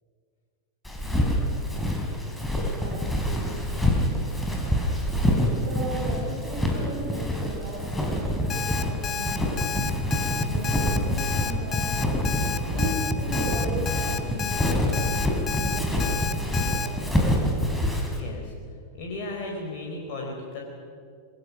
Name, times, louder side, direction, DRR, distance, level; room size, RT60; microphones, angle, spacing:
Walk footsteps, 0.9-18.2, left 1 dB, 5° left, 4.0 m, -26 dB
voice 1, 2.7-4.3 5.5-9.9 10.2-16.1 16.4-17.4, right 2 dB, 45° right, 0 dB, 5.4 m, -37 dB
Alarm, 8.5-16.9, left 7 dB, 25° left, 1.3 m, -31 dB
voice 2, 18.1-18.5 18.9-20.6, left 2 dB, 45° left, -1 dB, 4.3 m, -35 dB
26.0 x 22.0 x 6.2 m, 2.2 s
figure-of-eight pair, 90°, 0 cm